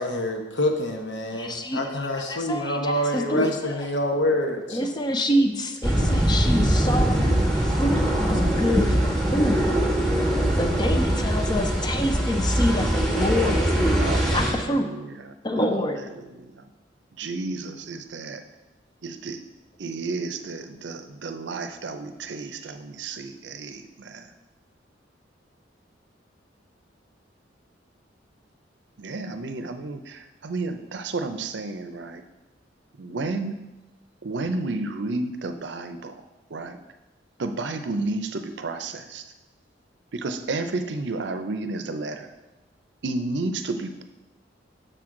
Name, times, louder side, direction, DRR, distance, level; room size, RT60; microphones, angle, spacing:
voice 1, 0.0-4.8, left 1 dB, 75° left, 3 dB, 1.0 m, -26 dB
voice 2, 1.3-1.8 2.1-3.9 4.7-9.7 10.6-15.1 15.4-16.1, equal, 25° left, 6 dB, 0.5 m, -27 dB
sound 1, 5.8-14.5, right 1 dB, ahead, 1.3 m, -22 dB
voice 3, 13.9-15.8 16.4-16.7 17.1-18.4 19.0-19.4 19.8-24.3 29.0-32.2 33.0-33.6 34.2-36.1 36.5-36.8 37.4-39.2 40.1-42.3 43.0-44.0, right 3 dB, 70° right, 8 dB, 0.6 m, -32 dB
6.6 x 6.1 x 3.8 m, 1.1 s
head